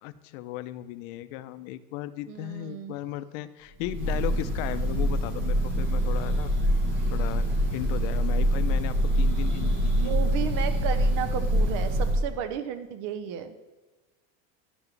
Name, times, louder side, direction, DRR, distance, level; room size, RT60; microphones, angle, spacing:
voice 1, 0.0-6.5 7.1-10.1, left 14 dB, 65° left, 13 dB, 0.6 m, -36 dB
voice 2, 2.3-2.9 9.6-13.5, right 8 dB, 50° right, 11 dB, 0.7 m, -34 dB
Breathing / Bird, 3.8-12.3, equal, 25° right, 1.5 m, -25 dB
12.0 x 4.8 x 3.2 m, 1.2 s
supercardioid pair, 140°, 42 cm